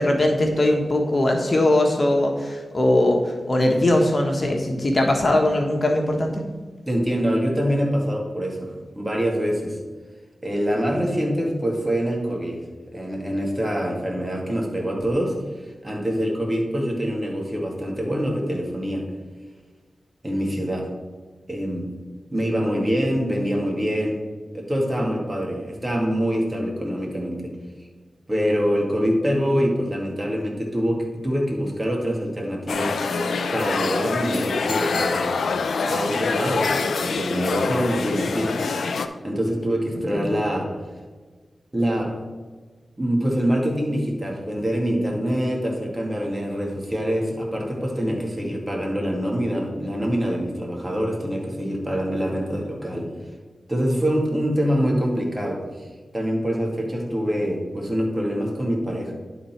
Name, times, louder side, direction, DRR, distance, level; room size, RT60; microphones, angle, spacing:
voice 1, 0.0-6.3 40.1-40.3, left 1 dB, 45° left, 1 dB, 1.4 m, -20 dB
voice 2, 6.9-9.8 10.4-12.6 12.9-15.3 15.8-19.1 20.2-20.9 21.5-21.9 22.3-24.2 24.5-27.5 28.3-33.0 33.5-35.4 35.9-38.6 39.2-40.7 41.7-42.2 43.0-53.1 53.7-55.9 56.1-59.1, equal, 25° right, 0 dB, 2.2 m, -25 dB
sound 1, 32.7-39.1, left 4 dB, 85° left, 0.5 m, -25 dB
11.0 x 4.1 x 4.5 m, 1.4 s
cardioid pair, 45°, 0 cm